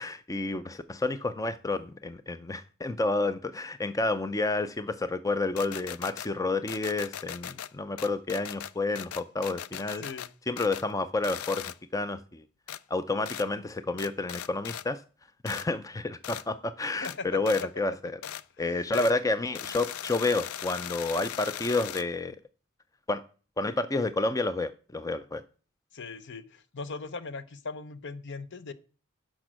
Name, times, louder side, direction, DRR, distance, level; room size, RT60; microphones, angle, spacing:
voice 1, 0.0-10.0 10.5-11.6 11.9-12.4 12.9-15.0 15.4-18.2 18.6-22.4 23.1-23.2 23.6-25.4, left 2 dB, 15° left, 12 dB, 0.5 m, -30 dB
sound 1, 5.6-6.3 6.7-7.7 8.0-10.3 10.6-10.9 11.2-11.8 12.7-12.8 13.3-13.5 14.0-14.9 15.5-15.7 16.2-16.5 17.0-17.2 17.5-17.7 18.2-18.4 18.9-19.1 19.5-22.1, left 10 dB, 90° left, 0.5 m, -39 dB
voice 2, 18.6-19.1 25.9-28.7, left 4 dB, 60° left, 13 dB, 0.9 m, -39 dB
10.5 x 6.1 x 6.2 m, 0.38 s
head